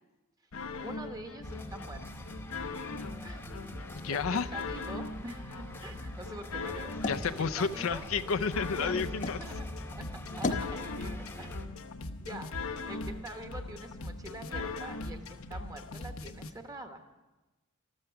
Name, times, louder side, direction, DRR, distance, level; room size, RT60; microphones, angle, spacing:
sound 1, 0.5-16.5, left 3 dB, 85° left, 0.9 m, -40 dB
voice 1, 0.8-2.7 3.2-3.5 4.1-8.0 8.6-9.7 10.0-11.5 12.2-12.5 12.9-17.0, right 1 dB, 20° right, 6 dB, 1.2 m, -45 dB
sound 2, 1.4-11.7, left 1 dB, 10° left, 1.0 m, -44 dB
voice 2, 3.9-4.5 7.1-9.4, left 5 dB, 70° left, 10 dB, 0.6 m, -31 dB
sound 3, 5.7-9.5 9.9-10.8, left 3 dB, 40° left, 0.9 m, -39 dB
13.5 x 13.5 x 6.9 m, 1.1 s
head